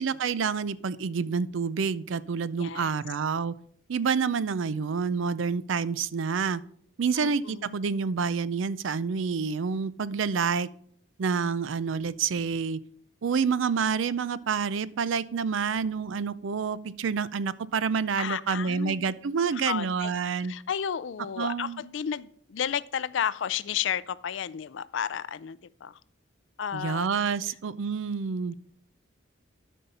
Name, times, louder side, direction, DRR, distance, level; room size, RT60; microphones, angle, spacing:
voice 1, 0.0-3.5 3.9-6.6 7.0-10.7 11.2-12.8 13.2-20.5 21.4-21.8 26.7-28.5, right 5 dB, 80° right, 17 dB, 0.5 m, -28 dB
voice 2, 2.6-3.0 7.2-7.7 18.2-19.1 19.5-20.1 20.4-26.0 26.6-27.1 27.5-27.6, left 8 dB, 70° left, 17 dB, 0.4 m, -32 dB
12.5 x 5.5 x 4.2 m, 0.62 s
head